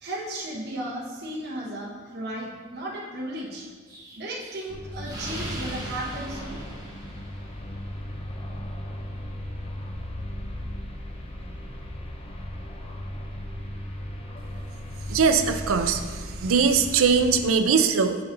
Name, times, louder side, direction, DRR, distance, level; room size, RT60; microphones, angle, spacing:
voice 1, 0.0-3.7 4.2-6.6, right 1 dB, 50° right, -5 dB, 1.0 m, -35 dB
Explosion, 3.9-7.7, right 1 dB, 15° right, 1.0 m, -39 dB
sound 1, 4.7-17.5, left 1 dB, 25° left, 0.6 m, -36 dB
voice 2, 15.1-16.0 16.4-18.2, right 5 dB, 75° right, 8 dB, 0.5 m, -21 dB
6.8 x 6.7 x 2.6 m, 1.5 s
head